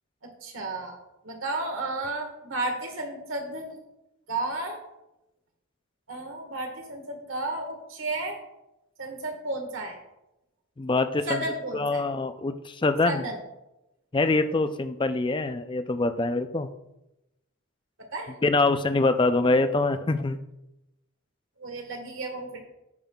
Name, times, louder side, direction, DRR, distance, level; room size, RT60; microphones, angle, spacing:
voice 1, 0.4-1.0 1.2-3.8 4.3-4.8 6.1-8.4 9.0-10.0 11.3-12.0 13.0-13.4 14.4-14.6 18.1-18.3 21.6-22.6, right 2 dB, 65° right, 3 dB, 1.6 m, -33 dB
voice 2, 10.8-11.4 11.7-13.2 14.1-16.7 18.4-20.4, left 3 dB, 25° left, 10 dB, 0.4 m, -24 dB
15.5 x 5.5 x 2.3 m, 0.91 s
head